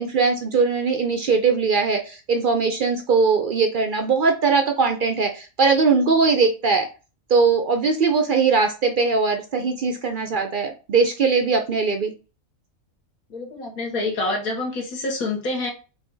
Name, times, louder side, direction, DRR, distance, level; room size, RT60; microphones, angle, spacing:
voice 1, 0.0-6.9 7.3-12.1, right 4 dB, 60° right, 5 dB, 0.5 m, -20 dB
voice 2, 13.3-15.7, left 2 dB, 85° left, 0 dB, 1.6 m, -27 dB
4.9 x 2.7 x 3.8 m, 0.33 s
omnidirectional pair, 1.5 m